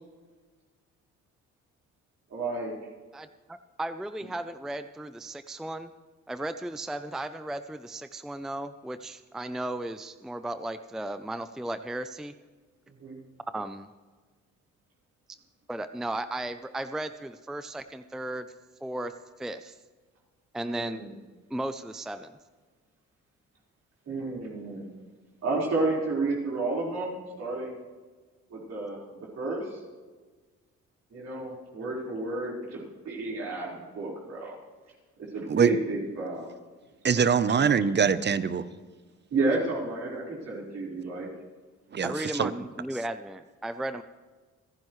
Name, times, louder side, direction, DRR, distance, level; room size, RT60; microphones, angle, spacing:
voice 1, 2.3-2.7 13.0-13.2 20.7-21.1 24.1-24.8 25.4-27.7 28.5-29.8 31.1-34.6 35.3-36.5 39.3-41.3, right 3 dB, 60° right, -4 dB, 4.7 m, -31 dB
voice 2, 3.1-5.9 6.3-12.3 13.5-13.9 15.7-18.5 18.8-19.8 20.5-21.0 21.5-22.4 42.0-44.0, right 1 dB, ahead, 10 dB, 0.5 m, -35 dB
voice 3, 37.0-38.6 41.9-42.5, right 6 dB, 35° right, 14 dB, 0.8 m, -23 dB
29.0 x 10.5 x 3.2 m, 1.4 s
cardioid pair, 90°, 30 cm